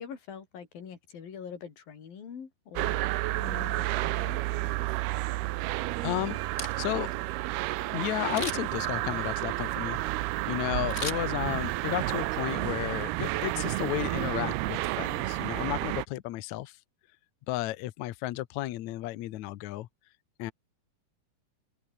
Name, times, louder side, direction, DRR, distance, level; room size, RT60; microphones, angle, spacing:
voice 1, 0.0-4.4, left 7 dB, 60° left, 5.2 m, -44 dB
sound 1, 2.8-16.1, right 18 dB, 80° right, 2.7 m, -31 dB
voice 2, 6.0-6.4 6.8-7.1 7.9-10.0 10.5-16.8 17.5-19.9 20.4-20.5, left 16 dB, 90° left, 1.6 m, -33 dB
Camera, 6.4-7.1 8.3-8.8 10.9-11.8 12.2-12.3, left 3 dB, 20° left, 3.4 m, -38 dB
open air
omnidirectional pair, 4.7 m